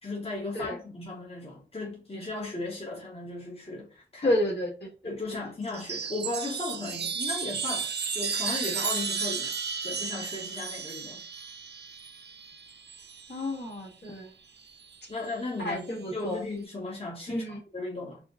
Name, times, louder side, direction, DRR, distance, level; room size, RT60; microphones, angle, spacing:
voice 1, 0.0-4.3 5.0-9.5 9.8-11.2 15.1-18.2, left 2 dB, 30° left, 1.1 m, -36 dB
voice 2, 4.2-4.9 5.3-5.4 13.3-14.3 15.6-16.4 17.3-17.6, left 1 dB, 65° left, 1.7 m, -30 dB
Chime, 5.6-13.5 14.7-15.3, right 6 dB, 65° right, 0.4 m, -34 dB
4.2 x 2.1 x 2.5 m
cardioid pair, 55°, 19 cm